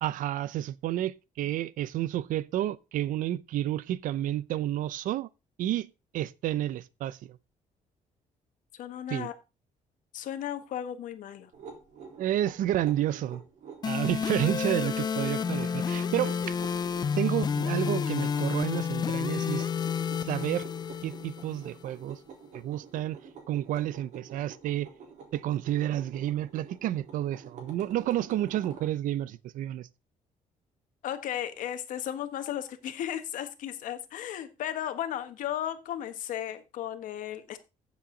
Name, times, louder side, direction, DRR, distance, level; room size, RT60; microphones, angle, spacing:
voice 1, 0.0-5.3 5.6-7.4 9.1-9.3 12.2-13.4 13.8-16.5 17.2-19.7 20.2-20.7 21.0-22.2 22.5-23.2 23.5-24.9 25.3-29.9, right 12 dB, 85° right, 0.7 m, -30 dB
voice 2, 8.7-9.3 10.1-11.5 31.0-37.6, left 11 dB, 80° left, 1.5 m, -35 dB
sound 1, 11.5-29.0, right 5 dB, 65° right, 3.7 m, -48 dB
sound 2, 13.8-21.8, left 6 dB, 30° left, 0.5 m, -30 dB
15.0 x 7.3 x 3.9 m
cardioid pair, 160°, 13 cm